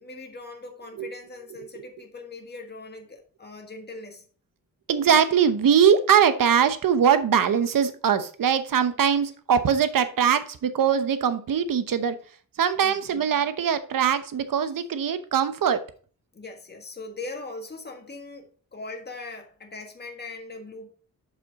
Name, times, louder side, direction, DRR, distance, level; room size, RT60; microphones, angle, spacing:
voice 1, 0.0-4.2 12.8-13.2 16.3-20.9, left 3 dB, 30° left, 1.7 m, -40 dB
voice 2, 4.9-12.1 12.6-15.8, right 8 dB, 75° right, 0.9 m, -22 dB
7.2 x 5.6 x 4.0 m
wide cardioid pair, 95°, 34 cm